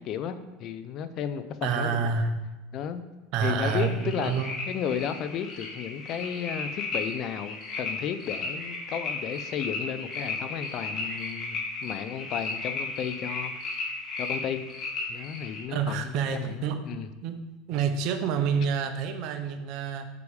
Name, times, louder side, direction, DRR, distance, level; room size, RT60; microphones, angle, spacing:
voice 1, 0.0-2.0 2.7-3.0 3.4-4.3 4.7-13.5 14.2-14.6 15.1-17.1, left 8 dB, 50° left, 11 dB, 0.6 m, -33 dB
voice 2, 1.6-2.3 3.3-4.6 15.7-16.8 17.2-17.4 17.7-20.1, right 6 dB, 60° right, 8 dB, 0.8 m, -28 dB
sound 1, 3.6-15.6, left 3 dB, 35° left, 1.8 m, -35 dB
6.8 x 4.8 x 4.9 m, 1.1 s
supercardioid pair, 105°, 0 cm